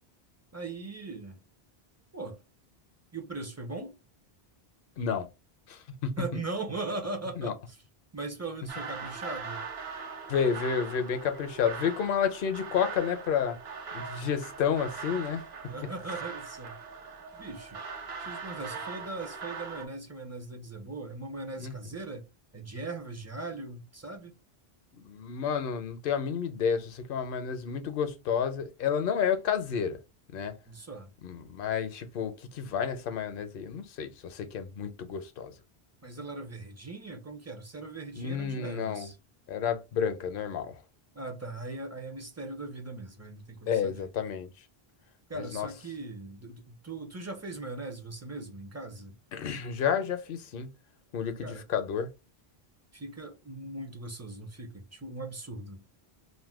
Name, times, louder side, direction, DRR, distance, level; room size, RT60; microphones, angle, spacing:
voice 1, 0.5-1.4 2.1-2.4 3.1-4.0 6.0-7.8 8.1-9.7 15.7-16.8 17.3-17.8 18.2-22.3 22.5-24.3 30.7-31.1 36.0-39.2 41.1-44.1 45.3-49.1 51.4-51.6 52.9-55.8, right 3 dB, 25° right, 0.4 m, -39 dB
voice 2, 5.0-5.3 5.7-6.4 7.4-7.5 10.3-13.6 13.9-15.9 21.6-21.7 24.9-30.0 30.3-30.5 31.2-35.5 38.2-39.1 39.5-40.8 43.7-44.5 45.3-45.7 49.3-50.7 51.1-52.1, left 7 dB, 65° left, 0.7 m, -30 dB
sound 1, 8.7-19.9, right 5 dB, 75° right, 1.0 m, -41 dB
2.6 x 2.1 x 3.4 m
omnidirectional pair, 1.0 m